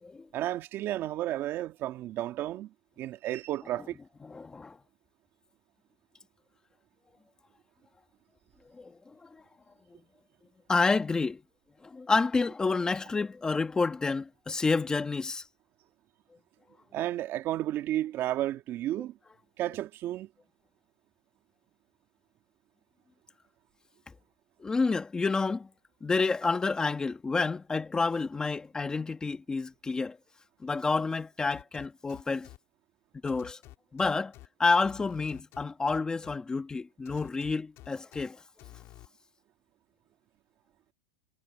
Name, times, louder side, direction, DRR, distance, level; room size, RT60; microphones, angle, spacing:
voice 1, 0.3-4.0 16.9-19.1 19.6-20.3, right 13 dB, 35° right, 2.0 m, -32 dB
voice 2, 4.2-4.8 8.8-9.4 10.7-11.4 11.8-15.4 24.6-25.7 26.0-30.2 30.6-32.5 33.2-33.6 33.9-34.3 34.6-38.4, left 4 dB, 10° left, 1.6 m, -29 dB
sound 1, 31.5-32.6 33.3-34.5 34.8-36.3 37.0-38.2 38.6-39.1, left 17 dB, 40° left, 3.9 m, -50 dB
supercardioid pair, 150°, 7 cm